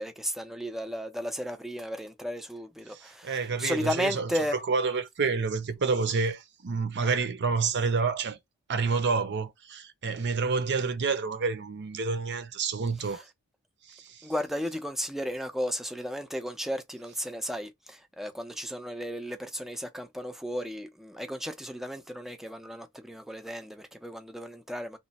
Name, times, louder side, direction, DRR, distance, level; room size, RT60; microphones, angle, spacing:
voice 1, 0.0-4.6 13.0-13.2 14.2-25.0, equal, ahead, 0.5 m, -34 dB
voice 2, 2.9-8.4 8.7-13.2 13.9-14.3, right 4 dB, 50° right, 0.6 m, -29 dB
3.1 x 2.3 x 4.1 m
head